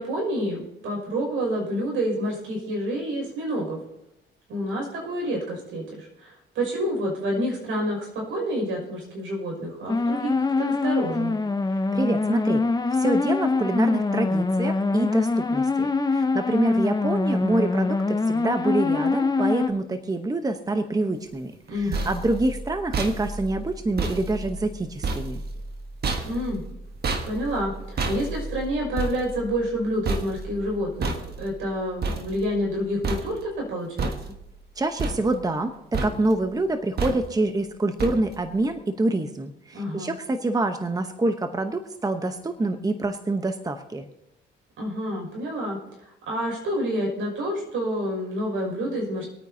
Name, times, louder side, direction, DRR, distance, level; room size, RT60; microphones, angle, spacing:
voice 1, 0.0-3.8 4.5-11.4 21.7-22.1 26.2-26.6 27.2-34.1 39.7-40.1 44.8-45.8 46.3-49.3, equal, 80° right, -1 dB, 6.2 m, -28 dB
sound 1, 9.9-19.7, left 3 dB, 20° left, 0.9 m, -24 dB
voice 2, 11.9-12.6 13.0-21.5 21.8-25.4 34.8-44.0, right 2 dB, 20° right, 7 dB, 1.0 m, -26 dB
sound 2, 21.5-32.8 33.0-33.6 34.0-34.6 35.0-35.7 35.9-36.5 37.0-37.5 38.0-38.5, right 3 dB, 55° right, 1.6 m, -31 dB
26.5 x 9.0 x 2.8 m, 0.87 s
cardioid pair, 90°, 20 cm